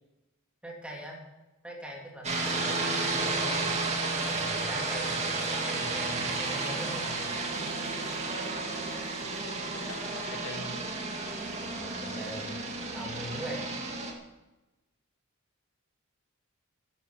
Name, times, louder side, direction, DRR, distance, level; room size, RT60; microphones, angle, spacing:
voice 1, 0.6-1.2 1.6-3.7 4.2-7.2 11.7-12.5 12.9-13.7, equal, 5° right, -2 dB, 3.2 m, -41 dB
sound 1, 2.2-14.1, right 3 dB, 30° right, 2.3 m, -32 dB
voice 2, 9.9-10.9, left 2 dB, 65° left, 6 dB, 1.4 m, -44 dB
15.0 x 9.4 x 7.6 m, 1.1 s
head